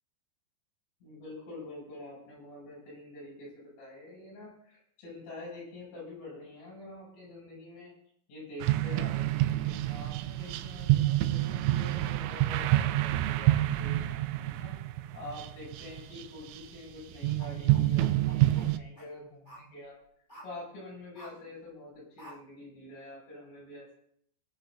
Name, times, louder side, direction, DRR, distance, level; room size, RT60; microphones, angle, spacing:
voice 1, 1.0-7.9 8.3-14.7 15.1-20.0 20.4-23.9, left 2 dB, 65° left, -5 dB, 10.5 m, -46 dB
sound 1, 8.6-16.6 17.2-18.8, right 15 dB, 80° right, 3.0 m, -28 dB
sound 2, 17.4-19.1 19.4-19.6 20.3-20.5 21.1-21.4 22.2-22.4, right 1 dB, 5° left, 3.0 m, -50 dB
29.0 x 10.5 x 2.7 m, 0.67 s
omnidirectional pair, 5.9 m